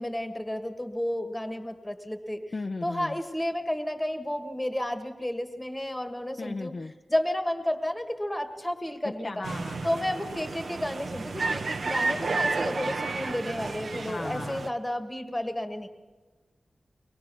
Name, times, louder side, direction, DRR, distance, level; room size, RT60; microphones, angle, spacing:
voice 1, 0.0-2.4 2.8-6.7 7.1-9.5 9.8-15.9, left 1 dB, 10° left, 7 dB, 1.6 m, -31 dB
voice 2, 2.5-3.2 6.4-6.9 9.0-9.9 12.1-12.4 14.1-14.6, left 3 dB, 45° left, 5 dB, 0.6 m, -36 dB
sound 1, 9.4-14.7, right 3 dB, 70° right, 1.0 m, -31 dB
23.5 x 20.0 x 6.2 m, 1.3 s
wide cardioid pair, 95°, 0 cm